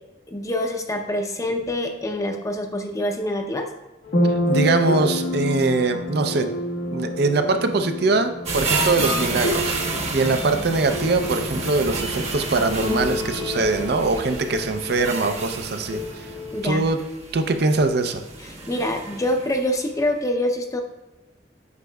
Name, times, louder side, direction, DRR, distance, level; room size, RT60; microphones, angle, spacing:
voice 1, 0.3-3.7 16.5-16.8 18.7-20.8, left 1 dB, 20° left, 4 dB, 0.6 m, -25 dB
sound 1, 4.0-16.6, left 1 dB, 85° left, 1.2 m, -29 dB
voice 2, 4.3-6.5 6.9-9.7 10.1-16.3 16.6-17.0 17.3-18.2, right 3 dB, 60° right, 7 dB, 0.5 m, -22 dB
sound 2, 8.5-19.7 20.1-20.2, right 3 dB, 35° right, 1.0 m, -30 dB
8.2 x 5.1 x 2.3 m, 1.0 s
head